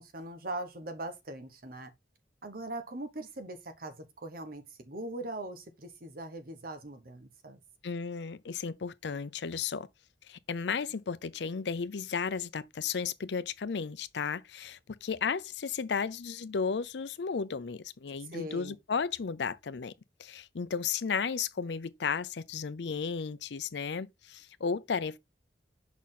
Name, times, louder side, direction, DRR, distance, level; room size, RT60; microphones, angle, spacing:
voice 1, 0.0-1.9 2.4-7.6 18.3-18.7, right 1 dB, 55° right, 1.1 m, -41 dB
voice 2, 7.8-9.9 10.3-19.9 20.2-25.2, left 6 dB, 75° left, 0.5 m, -34 dB
6.0 x 4.2 x 3.8 m
head